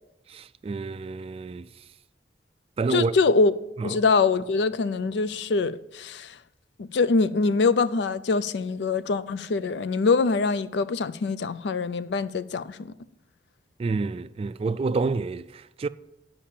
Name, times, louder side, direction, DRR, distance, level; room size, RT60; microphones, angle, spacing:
voice 1, 0.3-1.7 2.8-3.2 3.8-3.9 13.8-15.9, right 4 dB, 35° right, 0.3 m, -28 dB
voice 2, 2.9-3.5 3.8-6.3 6.8-12.9, left 4 dB, 70° left, 0.4 m, -24 dB
8.6 x 5.6 x 7.4 m
head